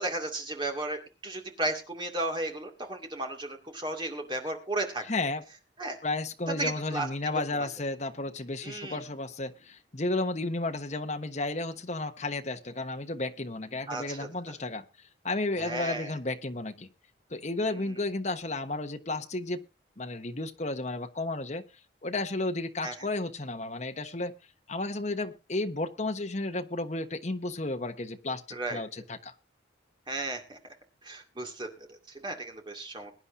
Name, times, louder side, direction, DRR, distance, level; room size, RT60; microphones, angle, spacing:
voice 1, 0.0-5.0 5.8-6.0 6.5-7.1 7.3-7.7 8.6-9.0 13.9-14.3 15.6-16.2 17.7-17.9 22.8-22.9 28.5-28.8 30.1-30.6 31.0-33.2, right 2 dB, 25° right, 3 dB, 2.3 m, -34 dB
voice 2, 5.1-5.4 6.0-14.8 15.2-16.9 17.3-19.6 20.0-21.6 22.0-24.3 24.7-28.4 28.7-29.3, left 2 dB, 40° left, 6 dB, 1.1 m, -33 dB
21.5 x 9.7 x 2.7 m, 0.30 s
head